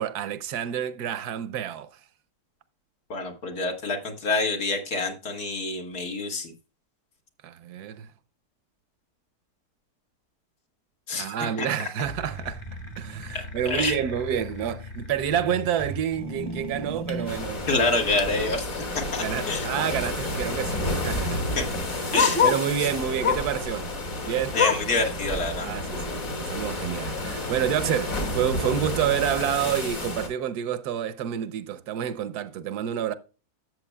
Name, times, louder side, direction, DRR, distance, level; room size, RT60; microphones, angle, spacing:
voice 1, 0.0-2.0 7.4-8.1 11.2-12.6 13.0-17.7 19.2-21.4 22.4-23.9 24.2-24.6 25.6-33.1, right 9 dB, 80° right, 1.3 m, -28 dB
voice 2, 3.1-6.5 11.1-11.9 13.7-14.0 17.7-19.7 21.6-21.7 22.1-22.5 24.5-25.7, left 3 dB, 75° left, 2.3 m, -27 dB
sound 1, 12.0-18.3, equal, 25° left, 0.8 m, -38 dB
sound 2, 17.3-30.3, left 1 dB, 60° left, 2.4 m, -31 dB
Bark, 19.0-19.2 19.6-19.7 19.9-22.7 23.2-23.6 24.0-25.0 25.4-25.5 25.9-26.0 26.7-26.8, left 6 dB, 40° left, 1.3 m, -26 dB
13.0 x 7.4 x 2.2 m
omnidirectional pair, 1.6 m